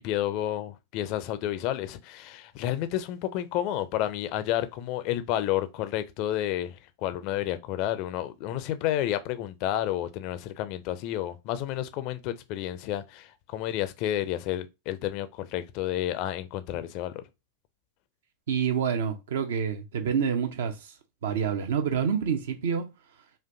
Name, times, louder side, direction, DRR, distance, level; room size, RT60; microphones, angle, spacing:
voice 1, 0.0-17.2, left 12 dB, 45° left, 0.5 m, -30 dB
voice 2, 18.5-20.9 21.2-22.9, right 7 dB, 60° right, 0.7 m, -27 dB
4.2 x 2.5 x 2.7 m
figure-of-eight pair, 90°, 0 cm